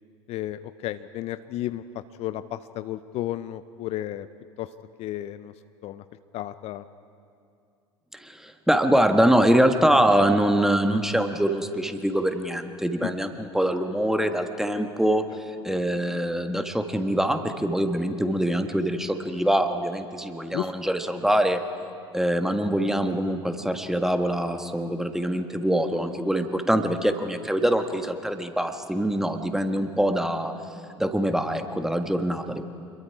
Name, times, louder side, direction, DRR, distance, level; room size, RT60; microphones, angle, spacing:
voice 1, 0.3-1.8 2.2-4.3 4.6-4.7 5.0-5.5 5.8-6.0 6.3-6.8 13.0-13.1 20.5-20.7, left 13 dB, 50° left, 13 dB, 0.6 m, -32 dB
voice 2, 8.1-21.6 22.1-30.5 31.0-32.6, right 1 dB, 5° right, 7 dB, 1.6 m, -24 dB
27.5 x 22.0 x 4.8 m, 2.5 s
figure-of-eight pair, 70°, 14 cm